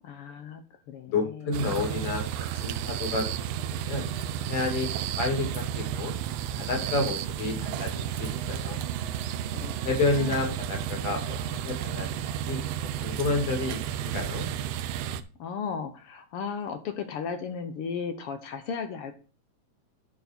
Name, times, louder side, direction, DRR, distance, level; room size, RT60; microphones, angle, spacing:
voice 1, 0.0-1.6 9.5-10.4 15.4-19.1, left 6 dB, 70° left, 8 dB, 1.4 m, -35 dB
voice 2, 1.1-3.2 3.7-4.1 4.5-6.2 6.5-8.8 9.8-11.4 11.6-14.5, left 3 dB, 50° left, 3 dB, 3.2 m, -30 dB
sound 1, 1.5-15.2, right 9 dB, 85° right, 1.4 m, -32 dB
10.5 x 4.5 x 4.3 m, 0.39 s
omnidirectional pair, 3.4 m